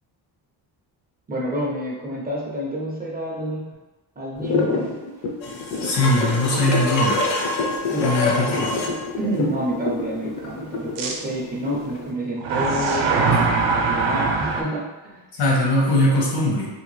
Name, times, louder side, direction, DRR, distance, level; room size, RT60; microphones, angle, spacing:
voice 1, 1.3-3.7 4.2-4.9 7.8-13.2 13.8-15.2, right 1 dB, 25° right, -4 dB, 0.4 m, -29 dB
sound 1, 4.4-12.2, left 4 dB, 35° left, 0.5 m, -28 dB
sound 2, 5.4-9.0 11.9-12.0, left 2 dB, 90° left, 0.6 m, -26 dB
sound 3, 5.7-5.8 6.4-6.5 11.0-11.1 12.4-14.6, right 4 dB, 80° right, 0.6 m, -21 dB
voice 2, 5.8-7.2 8.0-8.7 15.4-16.7, left 1 dB, 70° left, -3 dB, 1.0 m, -20 dB
2.7 x 2.2 x 3.0 m, 1.2 s
cardioid pair, 130°, 42 cm